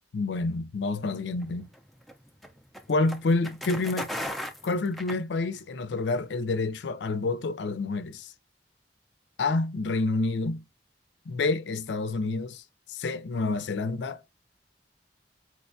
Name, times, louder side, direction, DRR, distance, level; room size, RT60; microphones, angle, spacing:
voice 1, 0.1-1.7 2.9-4.1 4.6-8.3 9.4-10.6 11.3-12.6 12.9-14.3, left 3 dB, 75° left, 0.4 m, -28 dB
sound 1, 1.3-5.8, equal, ahead, 0.5 m, -38 dB
4.6 x 2.2 x 2.5 m
head